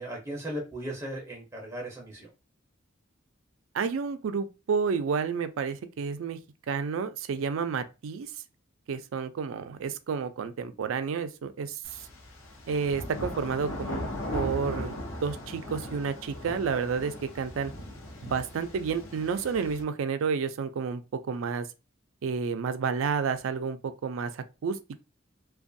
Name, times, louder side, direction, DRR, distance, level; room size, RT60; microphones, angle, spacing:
voice 1, 0.0-2.3, right 1 dB, 15° right, 0.5 m, -37 dB
voice 2, 3.7-6.4 6.7-8.3 8.9-12.1 12.7-14.1 14.3-15.0 15.2-17.7 18.2-21.7 22.2-24.8, right 5 dB, 80° right, 0.4 m, -30 dB
sound 1, 11.8-19.8, left 1 dB, 80° left, 0.7 m, -38 dB
2.5 x 2.2 x 2.6 m
head